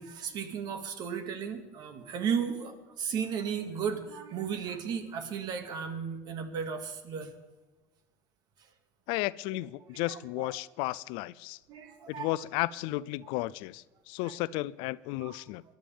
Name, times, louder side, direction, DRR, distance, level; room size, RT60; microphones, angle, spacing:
voice 1, 0.0-7.3 9.9-10.5 11.7-12.4 14.2-14.3 15.2-15.4, right 7 dB, 50° right, 7 dB, 2.1 m, -35 dB
voice 2, 9.1-11.6 12.1-15.6, left 18 dB, 70° left, 18 dB, 0.4 m, -33 dB
22.5 x 11.5 x 3.5 m, 1.2 s
supercardioid pair, 115°, 9 cm